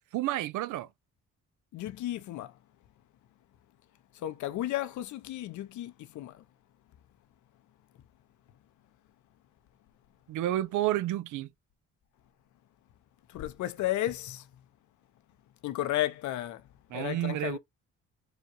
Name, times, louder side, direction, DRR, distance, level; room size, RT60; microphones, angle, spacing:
voice 1, 0.1-0.9 10.3-11.5 16.9-17.6, right 14 dB, 75° right, 0.5 m, -30 dB
voice 2, 1.7-2.6 4.1-6.4 13.3-14.5 15.6-16.7 16.9-17.6, left 14 dB, 70° left, 0.6 m, -33 dB
4.9 x 2.3 x 2.9 m
cardioid pair, 90°, 30 cm